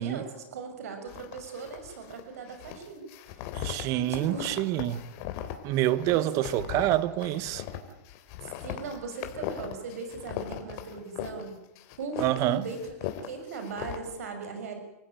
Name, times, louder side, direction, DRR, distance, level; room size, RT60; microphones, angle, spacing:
voice 1, 0.0-3.5 4.0-4.6 6.1-6.5 8.4-11.6 12.0-14.8, right 4 dB, 75° right, 6.4 m, -39 dB
sound 1, 1.1-2.2 2.5-11.5 11.8-14.0, left 11 dB, 50° left, 3.7 m, -39 dB
voice 2, 3.5-5.1 5.6-7.6 12.2-12.6, right 14 dB, 40° right, 1.5 m, -27 dB
29.5 x 15.5 x 9.1 m
hypercardioid pair, 135°, 8 cm